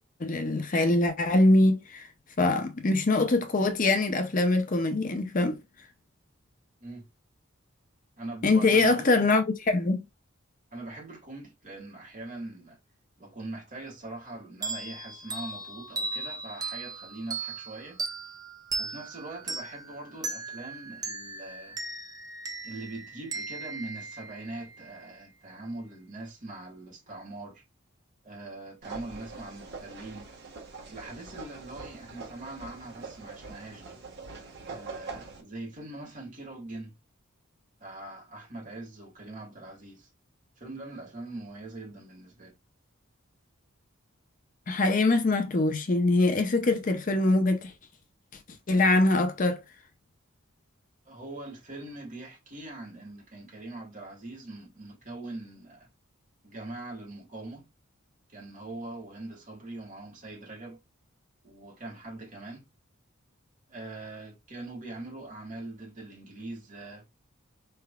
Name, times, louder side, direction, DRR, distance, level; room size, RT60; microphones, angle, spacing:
voice 1, 0.2-2.1 2.4-5.6 8.4-10.0 44.7-47.7 48.7-49.6, left 2 dB, 40° left, 0.6 m, -23 dB
voice 2, 8.2-9.2 10.7-12.8 13.2-18.0 18.8-21.8 22.6-27.6 28.2-30.3 30.9-34.0 34.7-36.9 37.8-40.1 40.6-42.5 51.1-55.9 56.4-57.7 58.3-60.8 61.4-62.7 63.7-67.0, right 2 dB, 40° right, 1.9 m, -42 dB
sound 1, 14.6-24.9, right 3 dB, 20° right, 0.6 m, -37 dB
sound 2, 28.8-35.4, right 4 dB, 55° right, 1.3 m, -43 dB
4.6 x 3.4 x 2.2 m
head